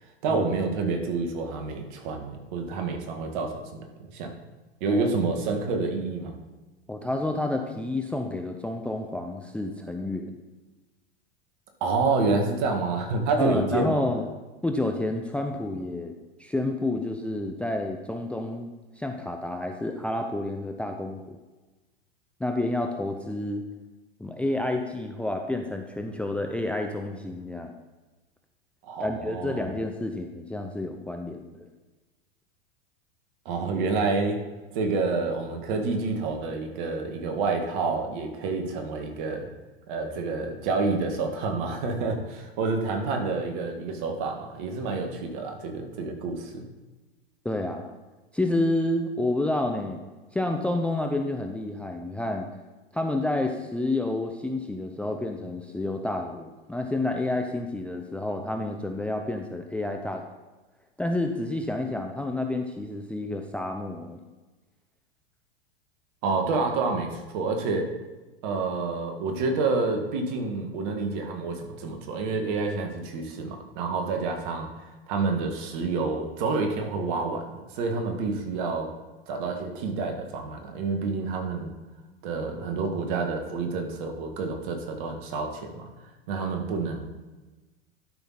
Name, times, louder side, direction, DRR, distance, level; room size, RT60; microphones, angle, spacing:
voice 1, 0.2-4.3 4.8-6.4 11.8-14.1 28.8-29.7 33.5-34.4 34.7-39.5 39.9-46.6 66.2-67.9 68.4-78.9 79.3-81.7 82.2-85.9 86.3-87.1, right 3 dB, 55° right, 4 dB, 1.9 m, -28 dB
voice 2, 6.9-10.3 13.4-14.2 14.6-16.1 16.4-18.7 19.0-21.4 22.4-23.6 24.2-27.8 29.0-31.7 47.4-47.9 48.3-50.0 50.3-52.5 52.9-60.2 61.0-64.2, left 2 dB, 5° left, 4 dB, 0.6 m, -29 dB
12.0 x 5.8 x 4.2 m, 1.2 s
hypercardioid pair, 100°, 30 cm